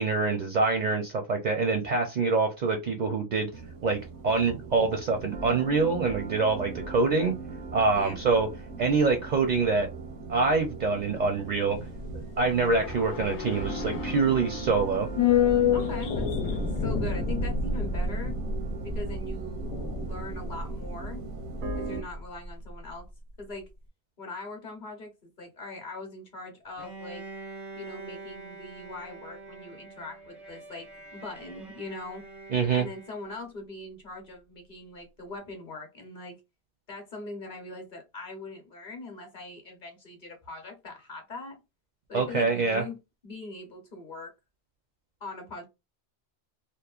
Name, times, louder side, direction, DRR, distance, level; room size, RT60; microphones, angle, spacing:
voice 1, 0.0-3.5 3.8-7.3 7.7-8.5 8.8-9.9 10.3-11.8 12.1-15.1 32.5-32.9 42.1-42.8, right 4 dB, 55° right, 4 dB, 0.5 m, -25 dB
sound 1, 3.5-22.0, right 3 dB, 80° right, 0.9 m, -39 dB
voice 2, 7.9-8.2 15.7-18.4 18.8-21.3 21.8-23.0 23.4-23.7 24.2-27.2 27.8-32.2 32.7-36.4 36.9-41.5 42.1-43.0 43.2-44.3 45.2-45.6, left 2 dB, 50° left, 3 dB, 0.9 m, -41 dB
sound 2, 11.8-22.2 22.5-22.6, left 6 dB, 85° left, 0.9 m, -29 dB
Bowed string instrument, 26.8-33.5, right 3 dB, ahead, 0.4 m, -45 dB
3.0 x 2.0 x 2.3 m, 0.24 s
omnidirectional pair, 1.1 m